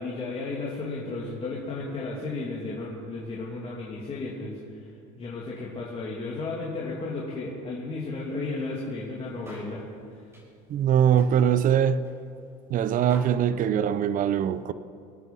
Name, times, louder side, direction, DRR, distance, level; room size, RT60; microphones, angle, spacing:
voice 1, 0.0-4.9 5.2-9.9, left 3 dB, 30° left, 2.7 m, -34 dB
sound 1, 8.0-8.1 8.4-8.9 9.2-9.8 10.2-10.5 10.8-11.7 12.0-12.2 12.5-12.6 13.1-13.2, equal, 15° right, 4.7 m, -47 dB
voice 2, 10.7-12.0 12.7-14.7, right 9 dB, 40° right, 0.7 m, -22 dB
25.5 x 9.2 x 5.5 m
supercardioid pair, 110°, 20 cm